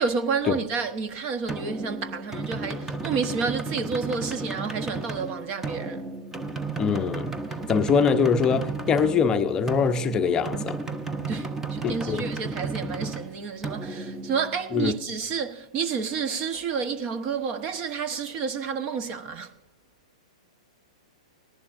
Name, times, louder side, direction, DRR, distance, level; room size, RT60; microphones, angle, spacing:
voice 1, 0.0-6.1 11.3-19.5, right 5 dB, 35° right, 1.1 m, -30 dB
sound 1, 1.5-15.0, right 3 dB, 10° right, 0.9 m, -33 dB
voice 2, 6.8-7.3 7.7-10.8 11.8-12.3 14.7-14.9, left 6 dB, 20° left, 0.7 m, -23 dB
19.0 x 11.0 x 2.6 m
hypercardioid pair, 120°, 3 cm